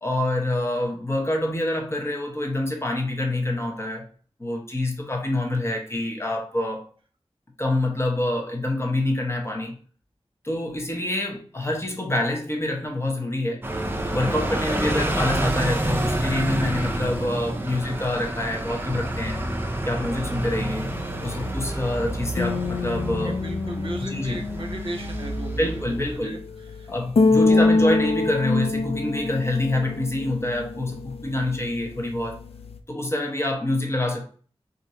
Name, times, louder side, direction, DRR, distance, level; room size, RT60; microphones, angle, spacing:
voice 1, 0.0-4.1 4.4-6.9 7.6-9.8 10.4-13.6 14.1-19.4 19.8-20.9 21.2-23.4 24.0-24.4 25.6-26.4 26.9-32.4 32.9-34.3, left 1 dB, 25° left, 0.8 m, -26 dB
sound 1, 13.6-26.2, right 1 dB, 20° right, 0.5 m, -28 dB
sound 2, 20.3-32.8, left 3 dB, 70° left, 0.4 m, -26 dB
voice 2, 23.2-25.7 26.1-26.4 26.7-26.9 27.4-27.9, right 1 dB, 55° right, 0.7 m, -36 dB
2.6 x 2.5 x 4.2 m
wide cardioid pair, 80°, 10 cm